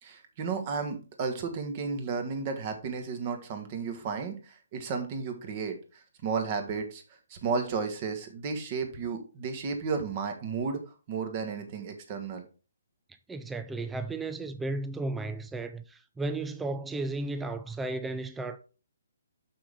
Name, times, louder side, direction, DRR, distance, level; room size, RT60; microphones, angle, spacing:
voice 1, 0.0-7.0 7.3-12.5, right 5 dB, 30° right, 1.4 m, -33 dB
voice 2, 13.3-18.6, right 2 dB, 5° right, 0.4 m, -34 dB
6.5 x 6.1 x 3.6 m
hypercardioid pair, 165°, 0 cm